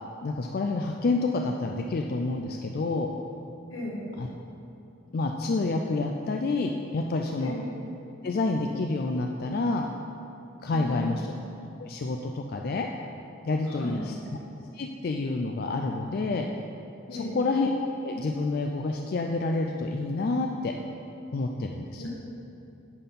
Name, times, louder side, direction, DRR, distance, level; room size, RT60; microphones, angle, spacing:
voice 1, 0.2-3.1 4.2-4.3 5.1-7.5 8.2-9.9 10.6-11.3 11.8-12.9 13.4-14.4 14.7-16.5 17.1-17.7 18.0-20.7 21.3-22.0, left 3 dB, 50° left, 2 dB, 0.4 m, -28 dB
voice 2, 3.7-4.1 7.4-7.6 10.7-11.2 13.6-14.1 17.1-17.4 22.0-22.1, left 1 dB, 80° left, -3 dB, 1.6 m, -36 dB
8.9 x 4.3 x 5.5 m, 2.8 s
head